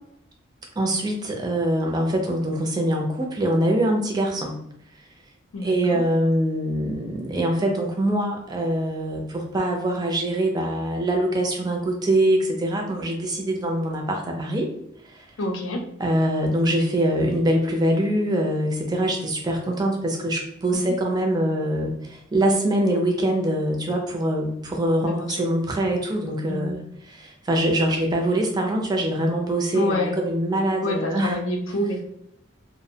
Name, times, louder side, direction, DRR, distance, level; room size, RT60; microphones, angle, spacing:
voice 1, 0.8-4.6 5.6-14.7 15.1-15.3 16.0-26.8 27.1-31.4, right 1 dB, 20° right, 1 dB, 0.4 m, -23 dB
voice 2, 5.5-6.0 15.4-15.8 20.7-21.0 25.0-25.4 26.5-26.7 29.7-30.2 30.8-32.0, left 1 dB, 80° left, 4 dB, 0.5 m, -27 dB
2.5 x 2.0 x 2.7 m, 0.76 s
head